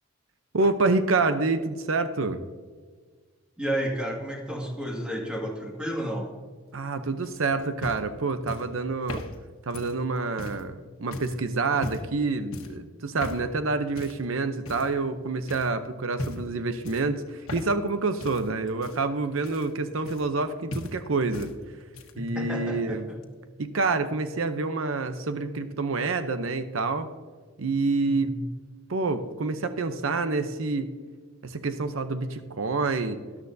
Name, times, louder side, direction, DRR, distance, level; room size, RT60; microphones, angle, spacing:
voice 1, 0.5-2.4 6.7-9.2 9.7-21.5 22.2-23.1 23.6-27.1 27.6-28.3 28.9-30.9 31.4-33.2, right 3 dB, 75° right, 10 dB, 0.7 m, -27 dB
voice 2, 3.6-6.3 22.3-23.2 28.0-28.4, equal, 5° right, -1 dB, 1.9 m, -31 dB
sound 1, 7.2-10.7 11.1-11.4 11.8-12.2 12.5-12.8 13.2-13.5 14.0-14.3 14.7-15.2 15.5-15.7 16.1-16.5 16.8-17.9 18.2-20.5 20.7-21.5 21.8-22.3 23.2-23.3, left 1 dB, 90° left, 1.3 m, -38 dB
13.0 x 11.5 x 2.7 m, 1.5 s
head